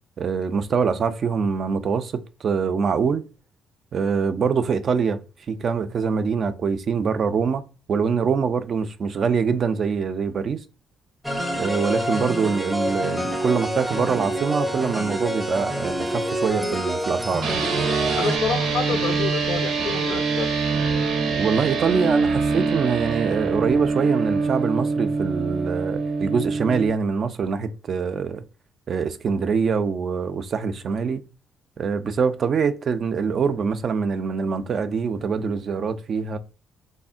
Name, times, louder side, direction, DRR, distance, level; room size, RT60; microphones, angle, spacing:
voice 1, 0.2-3.2 3.9-5.2 5.5-10.6 11.6-17.5 21.4-28.4 28.9-31.3 31.8-36.4, right 5 dB, 55° right, 0.3 m, -24 dB
sound 1, 11.2-18.4, equal, 5° right, 0.6 m, -27 dB
sound 2, 17.4-26.9, right 4 dB, 90° right, 0.7 m, -24 dB
voice 2, 18.2-20.5, left 6 dB, 70° left, 0.3 m, -28 dB
3.5 x 2.0 x 2.4 m
cardioid pair, 90°, 0 cm